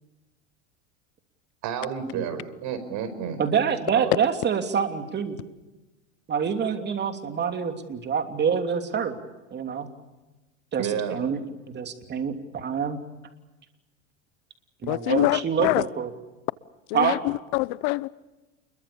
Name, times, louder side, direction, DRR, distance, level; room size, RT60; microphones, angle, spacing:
voice 1, 1.6-3.4 3.9-4.2 10.8-11.2, right 8 dB, 55° right, 5.2 m, -30 dB
voice 2, 3.4-5.4 6.3-9.2 9.5-9.9 10.7-13.0 14.8-16.1 16.9-17.2, right 7 dB, 30° right, 3.1 m, -26 dB
voice 3, 14.9-15.8 16.9-18.1, left 22 dB, 60° left, 0.9 m, -25 dB
29.0 x 22.5 x 7.0 m
supercardioid pair, 110°, 36 cm